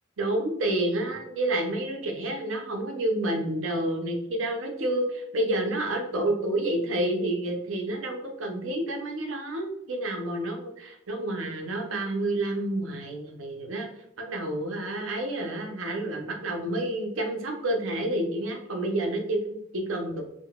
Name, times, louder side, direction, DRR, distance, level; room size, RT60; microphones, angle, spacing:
voice 1, 0.2-13.9 14.2-20.2, right 1 dB, 90° right, 3 dB, 0.6 m, -29 dB
3.6 x 2.1 x 2.2 m, 0.78 s
head